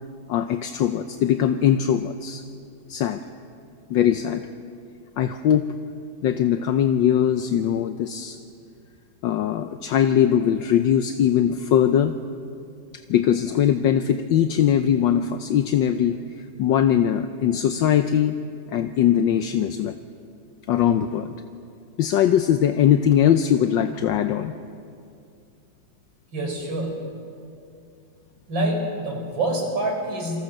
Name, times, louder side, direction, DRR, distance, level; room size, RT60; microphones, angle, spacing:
voice 1, 0.3-2.4 2.9-3.2 3.9-4.5 5.2-5.7 6.2-8.4 9.2-12.1 13.1-16.2 16.6-18.4 18.7-19.9 20.7-21.3 22.0-24.5, left 9 dB, 75° left, 8 dB, 1.4 m, -21 dB
voice 2, 26.3-27.0 28.5-30.4, right 1 dB, 75° right, 2 dB, 5.3 m, -26 dB
27.5 x 22.5 x 6.6 m, 2.4 s
omnidirectional pair, 2.1 m